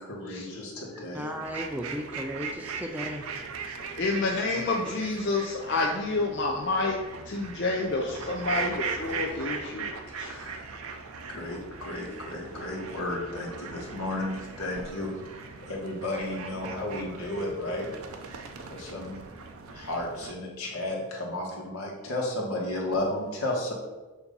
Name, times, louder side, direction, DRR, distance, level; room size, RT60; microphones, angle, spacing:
voice 1, 0.0-0.7 1.0-1.7 10.1-10.7 11.1-17.9 18.3-19.2 19.7-23.7, left 1 dB, 80° left, -1 dB, 1.5 m, -33 dB
voice 2, 1.2-3.2, equal, 5° right, 3 dB, 0.3 m, -35 dB
sound 1, 1.4-20.3, right 5 dB, 70° right, 0.6 m, -39 dB
voice 3, 4.0-7.0 7.3-9.9 10.2-10.3, left 3 dB, 50° left, 0 dB, 0.5 m, -28 dB
7.1 x 2.7 x 5.3 m, 1.2 s
head